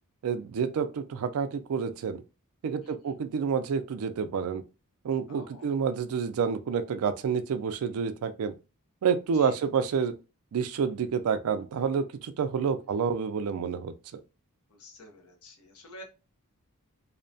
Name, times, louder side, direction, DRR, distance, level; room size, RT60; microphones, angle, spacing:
voice 1, 0.2-2.2 2.6-4.6 5.0-8.5 9.0-10.1 10.5-13.9, right 6 dB, 70° right, 0.3 m, -29 dB
voice 2, 2.8-3.2 5.3-5.7 9.3-9.6 12.8-13.0 14.7-16.0, left 1 dB, 75° left, 0.7 m, -50 dB
2.7 x 2.1 x 2.6 m
head